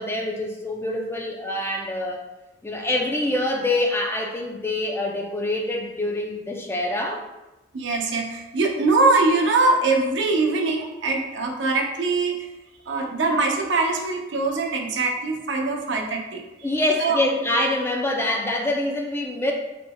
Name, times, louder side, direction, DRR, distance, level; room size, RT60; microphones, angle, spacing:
voice 1, 0.0-2.2 2.6-7.2 16.6-19.5, left 1 dB, 15° left, 1 dB, 0.4 m, -25 dB
voice 2, 7.7-12.4 12.9-16.4 17.0-17.2, right 3 dB, 85° right, 2 dB, 0.6 m, -22 dB
4.0 x 3.4 x 2.2 m, 1.0 s
head